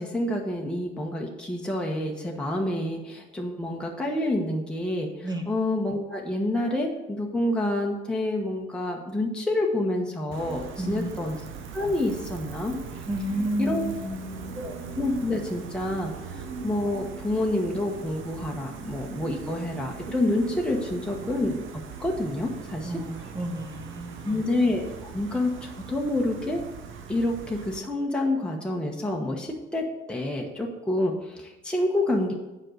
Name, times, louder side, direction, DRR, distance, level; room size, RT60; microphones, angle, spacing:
voice 1, 0.0-11.4 11.7-12.8 13.6-13.8 14.5-21.6 22.0-22.9 24.2-26.6 27.1-32.3, left 1 dB, 5° left, -1 dB, 1.1 m, -28 dB
Gull seagull, 10.3-27.8, right 5 dB, 80° right, 0.9 m, -40 dB
voice 2, 10.8-11.2 13.1-14.7 22.8-24.5, right 1 dB, 20° right, 4 dB, 1.3 m, -32 dB
7.5 x 5.3 x 6.3 m, 1.1 s
cardioid pair, 90°, 20 cm